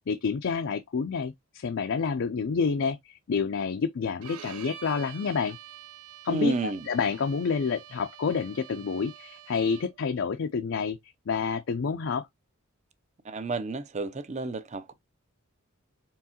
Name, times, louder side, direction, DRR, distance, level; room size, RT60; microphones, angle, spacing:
voice 1, 0.1-5.6 6.2-11.0 11.3-12.3, left 5 dB, 55° left, 0.4 m, -29 dB
Bowed string instrument, 4.2-10.1, right 11 dB, 85° right, 0.6 m, -47 dB
voice 2, 6.3-6.9 13.2-14.9, right 3 dB, 30° right, 0.5 m, -30 dB
4.5 x 3.6 x 2.8 m
head